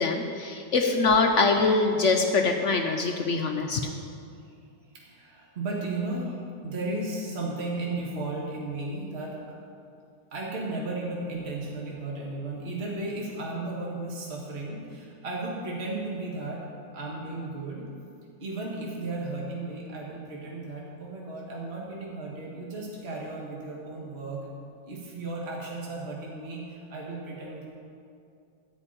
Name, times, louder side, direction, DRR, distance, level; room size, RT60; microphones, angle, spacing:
voice 1, 0.0-3.8, left 3 dB, 55° left, 3 dB, 0.9 m, -23 dB
voice 2, 4.9-6.4 6.6-9.4 10.3-16.6 16.9-17.9 18.4-24.5 24.9-27.6, right 2 dB, 35° right, -4 dB, 1.9 m, -34 dB
14.5 x 5.2 x 8.7 m, 2.5 s
omnidirectional pair, 1.9 m